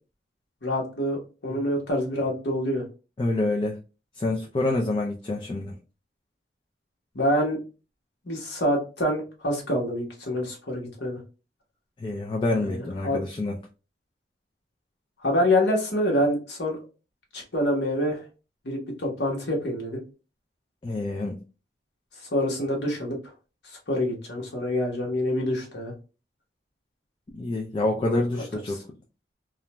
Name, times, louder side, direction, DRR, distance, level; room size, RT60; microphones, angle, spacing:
voice 1, 0.6-2.8 7.1-7.6 8.3-11.2 12.6-13.2 15.2-16.8 17.3-18.2 18.6-20.0 22.3-23.2 23.9-25.9 28.7-28.8, left 1 dB, 75° left, -1 dB, 1.0 m, -26 dB
voice 2, 3.2-3.8 4.2-5.7 12.0-13.6 20.8-21.4 27.3-28.8, left 2 dB, 30° left, -1 dB, 0.4 m, -27 dB
2.4 x 2.2 x 2.9 m, 0.33 s
head